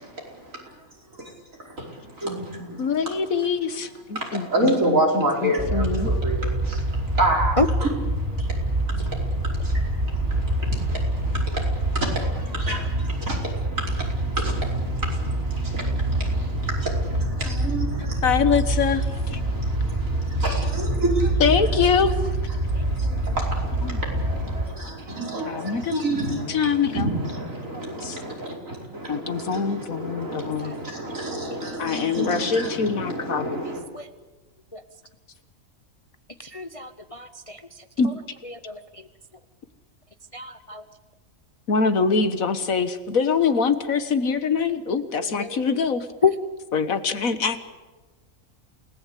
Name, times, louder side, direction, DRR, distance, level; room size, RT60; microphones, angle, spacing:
voice 1, 0.3-0.7 1.6-3.2 4.2-7.9 8.3-18.3 19.2-21.7 22.6-33.8, right 1 dB, 70° right, -1 dB, 5.5 m, -30 dB
voice 2, 2.8-6.1 18.2-19.4 21.4-22.1 23.8-24.0 25.4-26.0 26.5-27.2 28.0-28.2 29.1-30.7 31.8-33.6 38.0-38.2 41.7-46.1 46.7-47.6, left 5 dB, 75° left, 11 dB, 1.8 m, -24 dB
sound 1, 5.6-24.6, right 1 dB, 35° right, 7.9 m, -26 dB
voice 3, 25.1-25.5 30.6-30.8 31.0-31.2 31.5-31.6 33.9-34.1 34.7-34.8 36.4-37.6 38.5-39.0 40.3-40.8 45.2-45.6 46.2-46.3, left 4 dB, 30° left, 9 dB, 0.8 m, -28 dB
28.5 x 18.5 x 8.4 m, 1.2 s
omnidirectional pair, 1.4 m